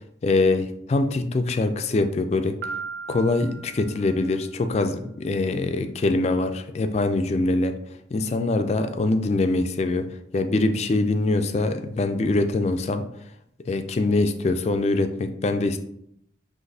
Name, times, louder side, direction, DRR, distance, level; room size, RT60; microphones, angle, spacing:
voice 1, 0.2-2.6 3.1-7.8 8.1-10.1 10.3-13.1 13.7-15.8, left 2 dB, 35° left, 8 dB, 0.3 m, -23 dB
Piano, 2.6-4.5, right 5 dB, 70° right, 0.5 m, -37 dB
5.8 x 3.0 x 2.7 m, 0.73 s
head